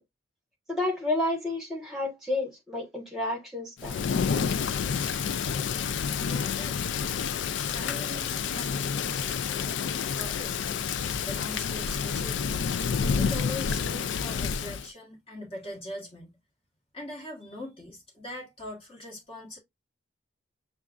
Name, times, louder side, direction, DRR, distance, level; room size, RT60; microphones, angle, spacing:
voice 1, 0.7-4.0, left 2 dB, ahead, 1.4 m, -30 dB
Thunder / Rain, 3.8-14.9, left 6 dB, 60° left, 0.3 m, -29 dB
voice 2, 6.2-6.8 7.6-9.2 9.5-9.8 10.1-10.9 11.3-12.6 13.2-16.4 16.9-19.6, left 1 dB, 25° left, 1.5 m, -41 dB
6.8 x 2.3 x 2.4 m
head